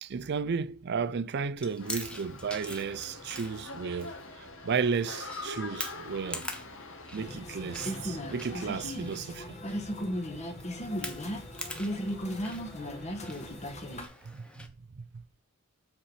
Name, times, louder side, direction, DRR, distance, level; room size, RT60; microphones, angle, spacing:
voice 1, 0.0-6.4 7.1-9.6 14.3-14.7 15.0-15.1, right 5 dB, 50° right, 0.5 m, -33 dB
Chewing mastication, 1.6-14.7, left 1 dB, 5° left, 1.0 m, -45 dB
sound 1, 1.8-8.9, left 2 dB, 65° left, 1.5 m, -44 dB
sound 2, 7.2-14.1, equal, 35° left, 1.3 m, -36 dB
7.4 x 4.5 x 4.8 m
head